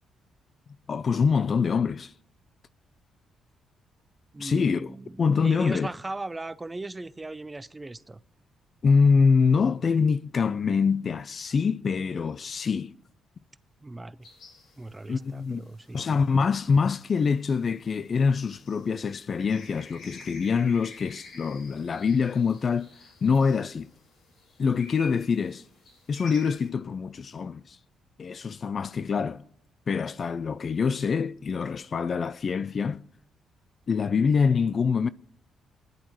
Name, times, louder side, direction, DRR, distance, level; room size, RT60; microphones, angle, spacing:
voice 1, 0.9-2.1 4.4-4.9 5.2-5.9 8.8-12.9 15.1-15.6 15.9-22.9 23.2-23.9 24.6-25.6 26.1-27.8 28.2-29.4 29.9-33.0 33.9-35.1, left 5 dB, 45° left, 0.4 m, -25 dB
voice 2, 4.3-8.2 13.8-14.3 14.8-16.0, right 2 dB, 20° right, 0.6 m, -37 dB
sound 1, 14.2-26.7, left 3 dB, 70° left, 4.5 m, -50 dB
21.0 x 10.5 x 3.1 m
cardioid pair, 80°, 0 cm